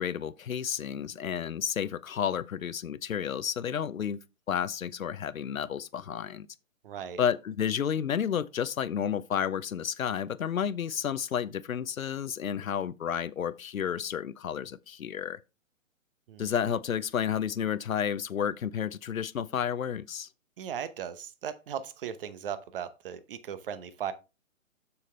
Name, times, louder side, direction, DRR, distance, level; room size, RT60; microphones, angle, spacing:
voice 1, 0.0-4.2 4.5-6.5 7.2-15.4 16.4-20.3, left 8 dB, 85° left, 0.7 m, -31 dB
voice 2, 6.8-7.2 16.3-16.5 20.6-24.1, right 9 dB, 40° right, 0.9 m, -37 dB
7.1 x 6.7 x 3.3 m
hypercardioid pair, 140°, 40 cm